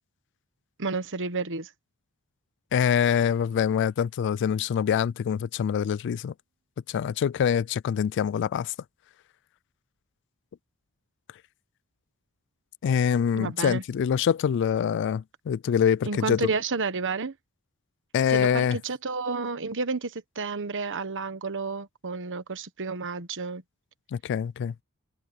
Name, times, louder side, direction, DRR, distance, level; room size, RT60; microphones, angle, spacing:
voice 1, 0.8-1.7 13.3-13.8 16.0-17.3 18.3-23.6, right 4 dB, 60° right, 1.2 m, -31 dB
voice 2, 2.7-6.3 6.9-8.7 12.8-16.4 18.1-18.8 24.1-24.7, left 8 dB, 55° left, 0.3 m, -25 dB
sound 1, 2.7-5.0, right 5 dB, 85° right, 6.3 m, -62 dB
open air
head